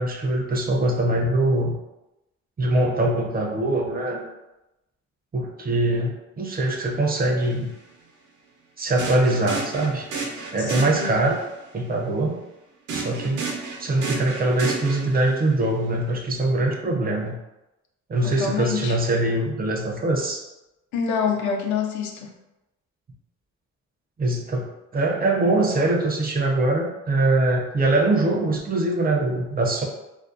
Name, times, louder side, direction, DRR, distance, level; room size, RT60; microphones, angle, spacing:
voice 1, 0.0-1.7 2.6-4.3 5.3-7.7 8.8-10.1 10.5-11.4 11.7-12.4 12.9-13.4 13.8-17.4 18.1-20.4 24.2-29.9, right 2 dB, 30° right, 0 dB, 0.4 m, -23 dB
sound 1, 7.4-7.5 9.0-11.4 12.9-15.5, right 4 dB, 80° right, 0.6 m, -32 dB
voice 2, 10.7-11.1 18.2-19.0 20.9-22.3, left 6 dB, 75° left, 3 dB, 0.5 m, -26 dB
2.4 x 2.1 x 2.4 m, 0.96 s
cardioid pair, 90°, 30 cm